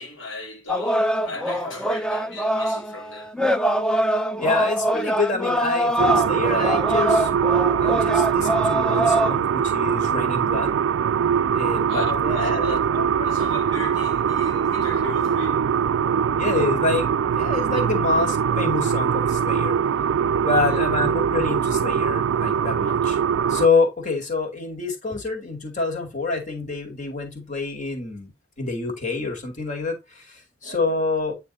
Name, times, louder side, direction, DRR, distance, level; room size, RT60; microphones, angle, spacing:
voice 1, 0.0-3.3 11.9-15.6 20.5-20.8, left 2 dB, 90° left, 2.1 m, -35 dB
sound 1, 0.7-9.4, right 1 dB, 5° left, 0.4 m, -23 dB
voice 2, 4.4-7.3 7.8-10.7 11.5-12.0 12.4-12.7 16.4-19.7 20.4-23.2 23.5-28.3 28.6-30.2 30.6-31.4, left 3 dB, 40° left, 2.4 m, -26 dB
sound 2, 6.0-23.7, right 7 dB, 75° right, 0.3 m, -22 dB
9.2 x 3.4 x 4.2 m
head